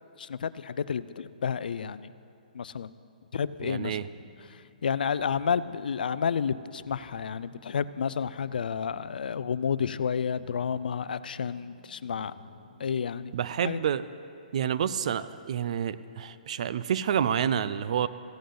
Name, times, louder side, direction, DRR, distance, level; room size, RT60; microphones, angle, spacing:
voice 1, 0.2-2.1 2.5-2.9 3.3-4.0 4.5-12.3 12.8-13.3 13.6-13.8, left 7 dB, 75° left, 15 dB, 0.4 m, -30 dB
sound 1, 3.5-13.5, left 3 dB, 15° left, 3.4 m, -55 dB
voice 2, 3.6-4.1 13.3-14.0 14.5-18.1, right 8 dB, 45° right, 15 dB, 0.4 m, -28 dB
15.5 x 10.0 x 3.9 m, 2.6 s
hypercardioid pair, 160°, 5 cm